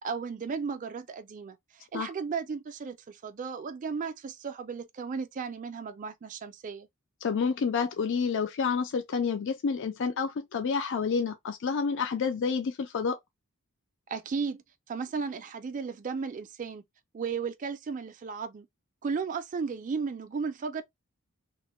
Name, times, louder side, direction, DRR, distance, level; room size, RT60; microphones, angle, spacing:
voice 1, 0.0-6.9 14.1-16.8 17.1-18.7 19.0-20.8, right 5 dB, 35° right, 0.3 m, -35 dB
voice 2, 7.2-13.2, left 5 dB, 55° left, 0.4 m, -29 dB
2.9 x 2.1 x 3.0 m
head